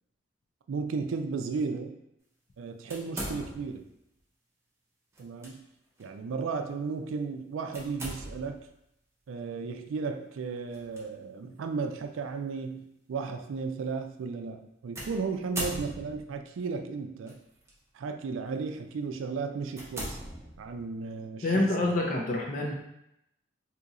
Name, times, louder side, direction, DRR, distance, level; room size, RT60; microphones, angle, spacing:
voice 1, 0.7-2.0 2.6-3.9 5.2-5.6 6.0-8.6 9.3-17.4 17.9-20.2 20.6-22.0, right 4 dB, 85° right, 6 dB, 0.3 m, -34 dB
sound 1, 2.9-3.9 5.2-5.5 6.0-6.1 7.7-8.6 10.7-11.0 11.8-11.9 15.0-16.4 17.3-17.7 18.3-18.5 19.0-19.1 19.7-20.9, right 1 dB, 15° right, 0.6 m, -39 dB
voice 2, 21.4-22.7, left 2 dB, 40° left, -1 dB, 0.5 m, -27 dB
2.8 x 2.4 x 4.0 m, 0.82 s
head